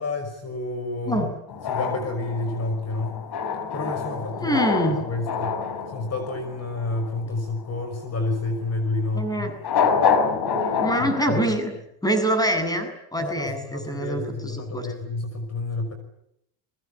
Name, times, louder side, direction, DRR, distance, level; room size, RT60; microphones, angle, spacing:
voice 1, 0.0-1.3 1.7-3.2 3.7-4.6 4.9-5.6 5.9-9.5 11.0-11.4 13.2-15.9, left 2 dB, 30° left, 8 dB, 5.9 m, -29 dB
sound 1, 1.5-7.2 9.5-11.2, left 6 dB, 50° left, 5.8 m, -26 dB
voice 2, 4.4-5.0 9.1-9.5 10.8-11.7 12.0-14.9, right 1 dB, 5° left, 7 dB, 7.6 m, -25 dB
23.5 x 22.5 x 9.9 m, 0.76 s
supercardioid pair, 105°, 49 cm